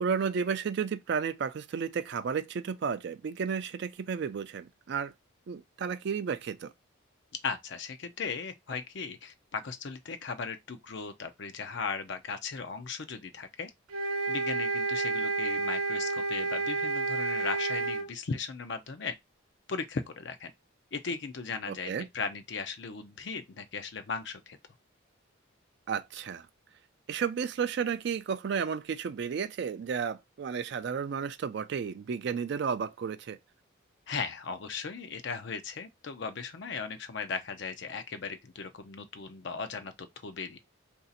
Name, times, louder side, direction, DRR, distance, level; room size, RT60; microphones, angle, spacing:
voice 1, 0.0-5.1 5.5-6.7 21.7-22.1 25.9-26.5 27.1-33.4, right 6 dB, 55° right, 0.3 m, -32 dB
voice 2, 7.4-13.7 14.3-19.1 19.7-20.5 20.9-24.6 34.1-40.6, left 5 dB, 55° left, 0.5 m, -37 dB
sound 1, 13.9-18.1, right 3 dB, 90° right, 0.8 m, -30 dB
2.6 x 2.4 x 3.9 m
head